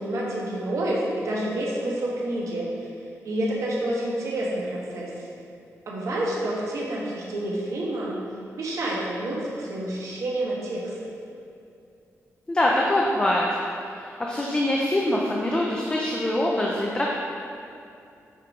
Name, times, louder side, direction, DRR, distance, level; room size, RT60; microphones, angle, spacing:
voice 1, 0.0-2.7 3.2-5.3 5.9-8.2 8.6-11.0, right 1 dB, 70° right, -5 dB, 1.3 m, -28 dB
voice 2, 12.5-13.5 13.9-17.1, left 1 dB, 15° left, -3 dB, 0.5 m, -24 dB
7.5 x 5.3 x 3.7 m, 2.5 s
wide cardioid pair, 170°, 6 cm